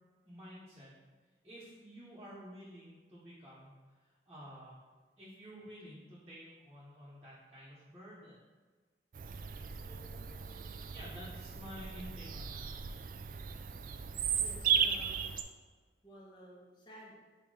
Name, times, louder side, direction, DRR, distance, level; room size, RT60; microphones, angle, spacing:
voice 1, 0.2-0.9 1.4-3.7 4.3-4.8 5.2-8.4 9.7-12.6, equal, 15° right, -9 dB, 1.2 m, -51 dB
Bird vocalization bird call bird song, 9.1-15.4, right 7 dB, 50° right, 0.3 m, -36 dB
voice 2, 14.4-15.3 16.0-17.2, equal, 25° left, -4 dB, 1.1 m, -53 dB
8.6 x 3.0 x 3.9 m, 1.4 s
head